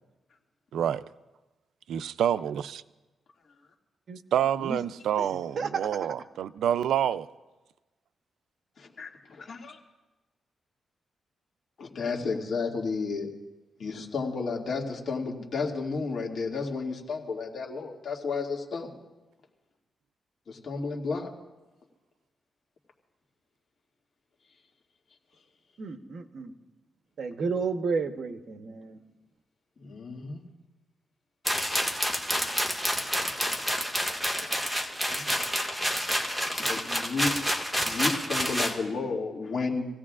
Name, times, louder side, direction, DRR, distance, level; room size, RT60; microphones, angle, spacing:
voice 1, 0.7-1.0 1.9-2.8 4.3-7.3, right 10 dB, 90° right, 0.4 m, -27 dB
voice 2, 5.6-6.1 25.8-26.5 27.2-29.0, right 5 dB, 60° right, 1.0 m, -32 dB
voice 3, 9.4-9.7 11.8-13.3 13.8-18.9 20.5-21.3 29.8-30.4 35.1-35.3 36.6-37.4 37.8-39.9, left 4 dB, 60° left, 2.2 m, -32 dB
sound 1, 31.5-38.8, equal, ahead, 1.8 m, -28 dB
26.5 x 16.5 x 2.5 m
cardioid pair, 105°, 0 cm